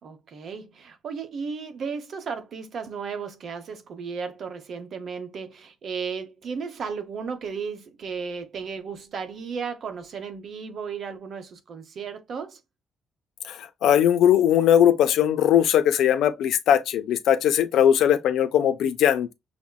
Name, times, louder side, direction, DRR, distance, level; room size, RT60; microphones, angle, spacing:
voice 1, 0.0-12.6, right 5 dB, 60° right, 0.9 m, -34 dB
voice 2, 13.4-19.3, left 10 dB, 80° left, 0.5 m, -20 dB
5.8 x 2.1 x 2.2 m
cardioid pair, 90°, 0 cm